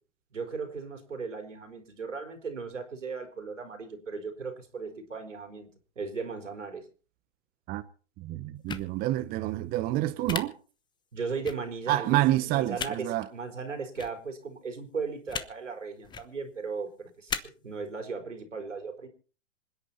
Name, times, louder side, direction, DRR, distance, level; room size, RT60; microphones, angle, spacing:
voice 1, 0.3-5.7 6.0-6.9 11.1-12.2 12.4-19.1, right 5 dB, 85° right, 4.3 m, -37 dB
voice 2, 8.2-10.5 11.9-13.3, right 15 dB, 25° right, 0.9 m, -28 dB
sound 1, 8.7-8.8 10.3-10.4 11.4-11.5 12.7-12.9 14.0-14.1 15.3-15.5 16.0-16.2 17.3-17.4, left 7 dB, 10° left, 1.0 m, -33 dB
26.5 x 10.0 x 4.2 m
hypercardioid pair, 120°, 36 cm